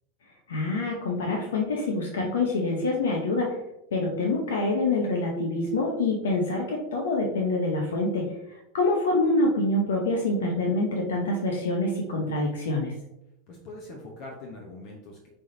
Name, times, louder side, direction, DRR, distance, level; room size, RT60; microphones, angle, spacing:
voice 1, 0.5-3.6 3.9-8.3 8.7-12.9, left 2 dB, 85° left, 1 dB, 0.7 m, -26 dB
voice 2, 13.5-15.3, left 2 dB, 55° left, 0 dB, 0.9 m, -42 dB
5.4 x 3.4 x 2.7 m, 0.86 s
hypercardioid pair, 100°, 0 cm